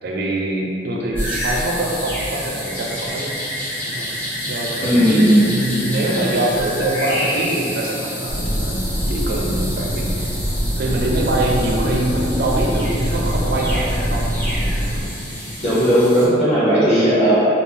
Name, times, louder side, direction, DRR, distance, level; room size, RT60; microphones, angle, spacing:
voice 1, 0.0-3.4 3.9-4.1 4.5-8.8 9.1-10.3 10.8-14.5 14.8-15.0 16.7-16.8, right 1 dB, 60° right, -2 dB, 0.5 m, -24 dB
sound 1, 1.1-1.8 2.0-2.4 3.1-3.2 5.5-7.9 8.4-9.4, equal, 60° left, 1.4 m, -28 dB
sound 2, 1.2-16.3, equal, 10° left, 0.9 m, -30 dB
voice 2, 4.8-5.5 15.6-17.5, equal, 40° left, -11 dB, 1.4 m, -15 dB
sound 3, 8.3-15.0, equal, 80° left, 1.4 m, -23 dB
3.4 x 2.3 x 3.9 m, 2.6 s
head